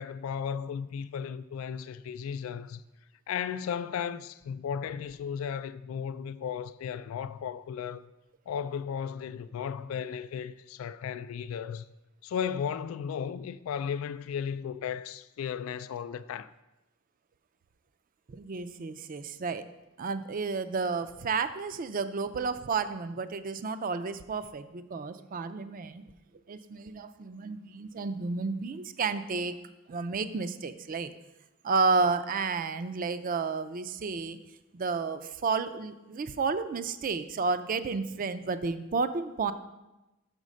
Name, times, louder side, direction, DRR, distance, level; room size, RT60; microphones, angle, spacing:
voice 1, 0.0-2.8 3.3-8.1 8.5-11.9 12.2-16.5, left 7 dB, 80° left, 0.3 m, -35 dB
voice 2, 18.3-19.6 20.0-26.0 26.5-29.6 29.9-31.1 31.6-34.4 34.7-39.5, right 4 dB, 40° right, 0.4 m, -31 dB
6.4 x 5.2 x 6.2 m
head